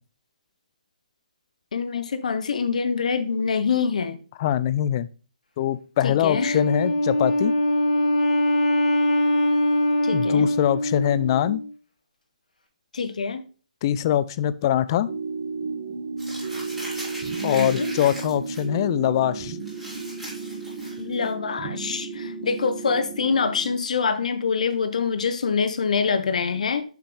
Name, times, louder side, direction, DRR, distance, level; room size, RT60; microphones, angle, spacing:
voice 1, 1.7-4.2 6.0-6.6 10.0-10.5 12.9-13.4 17.5-17.9 21.0-26.8, left 5 dB, 60° left, 0.9 m, -25 dB
voice 2, 4.4-5.1 5.6-7.5 10.1-11.6 13.8-15.1 17.4-19.6, left 11 dB, 35° left, 0.4 m, -23 dB
Wind instrument woodwind instrument, 6.3-11.7, left 1 dB, 90° left, 1.9 m, -22 dB
sound 1, 15.1-23.8, right 4 dB, 35° right, 1.6 m, -33 dB
Crumpling crinkling, 16.2-18.6 19.0-19.2 19.6-21.3, equal, 5° right, 3.0 m, -39 dB
7.0 x 5.8 x 3.2 m
figure-of-eight pair, 140°, 4 cm